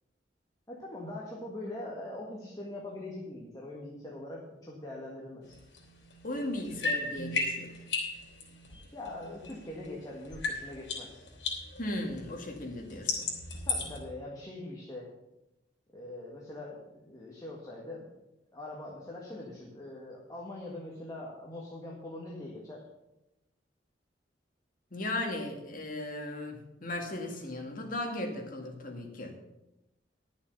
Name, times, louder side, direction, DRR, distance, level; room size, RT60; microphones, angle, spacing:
voice 1, 0.7-5.6 8.9-11.2 13.6-15.1 15.9-18.1 18.5-22.8, left 1 dB, 20° left, -3 dB, 1.8 m, -42 dB
sound 1, 5.5-10.0 10.2-14.0, left 3 dB, 85° left, 3.6 m, -36 dB
voice 2, 6.2-7.7 11.8-13.3 24.9-29.4, left 1 dB, 50° left, 2 dB, 2.0 m, -36 dB
11.5 x 7.1 x 6.7 m, 0.92 s
head